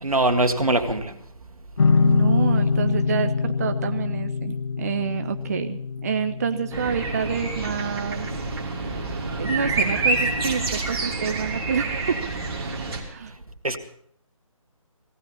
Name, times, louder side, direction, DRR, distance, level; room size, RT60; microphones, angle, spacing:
voice 1, 0.0-1.1 13.6-13.8, right 2 dB, 80° right, 8 dB, 2.0 m, -22 dB
sound 1, 1.8-9.0, left 5 dB, 55° left, 0.8 m, -25 dB
voice 2, 1.9-8.3 9.4-12.2 12.9-13.3, right 6 dB, 30° right, 9 dB, 0.5 m, -28 dB
garden mixdown, 6.7-13.0, right 3 dB, 45° right, 3.1 m, -27 dB
18.5 x 16.5 x 4.2 m, 0.66 s
figure-of-eight pair, 150°, 18 cm